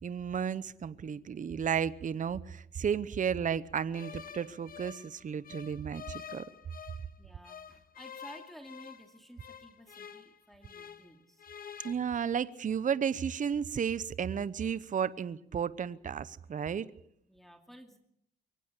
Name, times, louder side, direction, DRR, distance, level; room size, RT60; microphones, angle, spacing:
voice 1, 0.0-6.4 11.8-16.9, right 7 dB, 40° right, 0.9 m, -33 dB
sound 1, 3.9-7.1 7.4-11.1 11.4-11.9, left 7 dB, 45° left, 1.7 m, -48 dB
voice 2, 7.2-11.4 17.3-18.0, equal, ahead, 2.6 m, -53 dB
23.0 x 18.0 x 8.3 m
cardioid pair, 90°, 20 cm